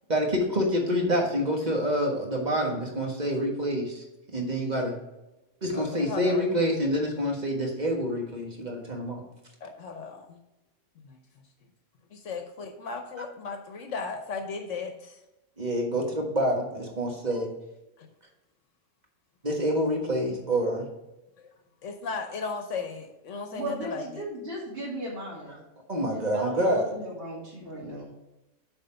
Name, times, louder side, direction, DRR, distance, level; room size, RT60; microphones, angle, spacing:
voice 1, 0.1-4.0 4.3-5.0 5.6-9.3 15.6-17.5 19.4-20.9 25.9-26.9, equal, 35° right, 1 dB, 1.7 m, -27 dB
voice 2, 5.7-6.5 9.6-10.4 11.0-11.2 12.1-15.2 18.0-18.1 21.4-21.5 21.8-24.3, left 4 dB, 75° left, 5 dB, 1.2 m, -36 dB
voice 3, 23.5-25.5 26.2-28.1, right 1 dB, 50° right, -8 dB, 2.3 m, -36 dB
8.1 x 4.3 x 5.7 m, 0.97 s
omnidirectional pair, 1.3 m